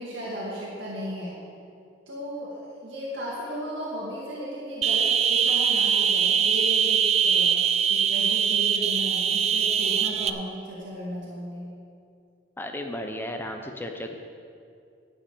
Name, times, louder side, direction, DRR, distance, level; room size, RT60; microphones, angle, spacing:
voice 1, 0.0-1.4 2.1-7.6 7.9-11.7, equal, 65° right, -6 dB, 2.3 m, -35 dB
sound 1, 4.8-10.3, right 7 dB, 35° right, 0.4 m, -22 dB
voice 2, 12.6-14.1, left 1 dB, 10° left, 4 dB, 0.6 m, -34 dB
11.0 x 5.9 x 8.8 m, 2.4 s
head